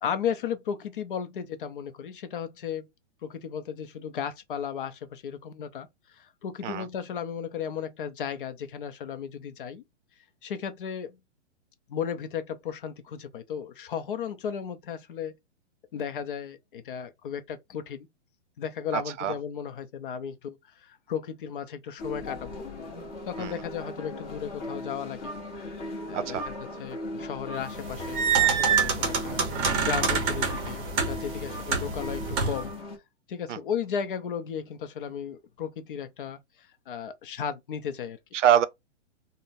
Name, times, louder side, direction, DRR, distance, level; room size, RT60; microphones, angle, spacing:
voice 1, 0.0-2.9 3.2-9.8 10.4-11.2 11.9-15.4 15.9-18.1 18.6-22.6 23.3-25.3 26.1-26.4 26.8-29.4 29.8-32.7 33.3-38.2, left 8 dB, 50° left, 0.5 m, -35 dB
voice 2, 18.9-19.4 23.4-23.6 26.1-26.5 31.7-31.8 33.5-33.6 38.3-38.7, right 10 dB, 90° right, 0.6 m, -25 dB
sound 1, 22.0-33.0, left 1 dB, 25° left, 1.1 m, -38 dB
sound 2, 27.7-32.7, right 6 dB, 20° right, 0.7 m, -27 dB
3.7 x 2.1 x 2.5 m
hypercardioid pair, 160°, 36 cm